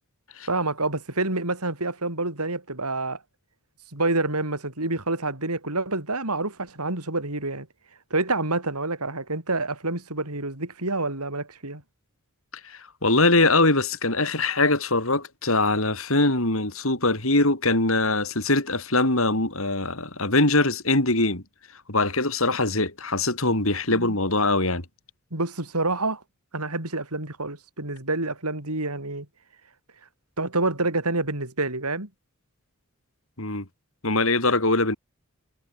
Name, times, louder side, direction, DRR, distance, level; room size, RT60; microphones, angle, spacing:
voice 1, 0.5-3.2 3.9-7.7 8.1-11.8 23.9-24.2 25.3-26.2 26.5-29.3 30.4-32.1, right 2 dB, 90° right, 6.2 m, -27 dB
voice 2, 12.6-21.4 21.9-24.8 33.4-33.7 34.0-35.0, left 2 dB, 65° left, 5.2 m, -22 dB
head